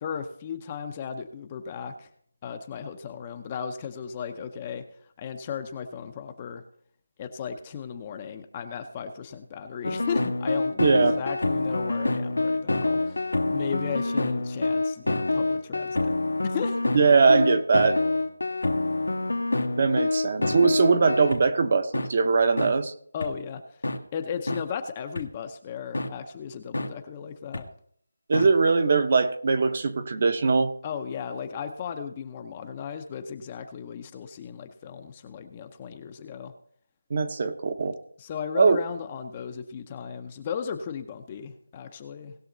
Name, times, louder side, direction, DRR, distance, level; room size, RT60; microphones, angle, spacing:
voice 1, 0.0-2.1 2.4-4.8 5.2-6.6 7.2-16.1 16.4-16.8 23.1-23.8 24.1-27.7 30.8-36.5 38.2-42.3, left 7 dB, 20° left, 7 dB, 0.6 m, -36 dB
sound 1, 9.8-21.4 21.9-22.1 22.6-22.7 23.2-23.3 23.8-24.0 24.5-24.6 25.2-25.3 25.9-26.1 26.7-26.9 27.5-27.6 28.3-28.5, left 2 dB, 90° left, 1.6 m, -26 dB
voice 2, 10.8-11.2 16.9-18.0 19.8-22.9 28.3-30.7 37.1-38.0 38.6-38.8, right 4 dB, 40° right, 9 dB, 0.9 m, -21 dB
19.0 x 6.4 x 3.9 m, 0.64 s
figure-of-eight pair, 170°, 0 cm